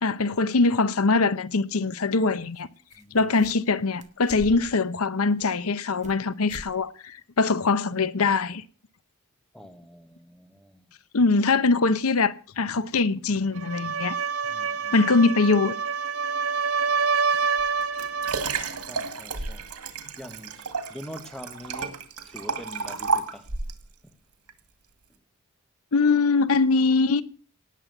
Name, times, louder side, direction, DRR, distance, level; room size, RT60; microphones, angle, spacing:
voice 1, 0.0-2.7 3.1-8.6 11.1-14.2 14.9-15.7 25.9-27.2, left 3 dB, 75° left, 0.8 m, -22 dB
sound 1, 2.5-2.6 2.9-3.7 4.0-4.8 5.3-6.2 6.5-6.7 7.1-7.2 7.7-7.8, right 1 dB, 35° right, 1.8 m, -44 dB
voice 2, 3.0-3.3 9.5-10.9 14.5-15.1 18.9-23.5 24.0-24.1 25.1-25.2, equal, 5° left, 1.5 m, -45 dB
sound 2, 13.5-18.5, right 5 dB, 75° right, 1.5 m, -27 dB
Liquid, 17.6-23.8 24.5-24.6, right 4 dB, 90° right, 2.1 m, -31 dB
18.5 x 7.5 x 7.9 m
head